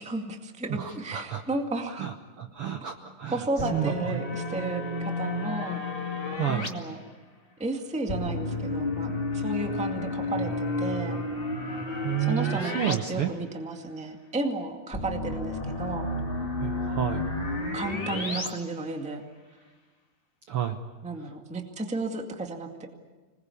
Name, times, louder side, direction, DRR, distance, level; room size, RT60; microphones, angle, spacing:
voice 1, 0.0-2.1 2.8-2.9 3.3-5.8 6.5-7.0 7.6-11.2 12.2-16.1 17.6-19.2 21.0-22.9, right 2 dB, 5° right, 3 dB, 0.9 m, -33 dB
voice 2, 0.8-1.4 2.0-3.4 3.7-4.2 6.3-6.7 12.0-13.3 16.6-17.3 20.5-20.8, right 10 dB, 90° right, 6 dB, 1.2 m, -30 dB
sound 1, 3.6-6.7 8.1-12.9 13.3-13.4 14.9-18.5, left 2 dB, 20° left, 1.6 m, -31 dB
26.0 x 20.5 x 8.5 m, 1.3 s
omnidirectional pair, 4.0 m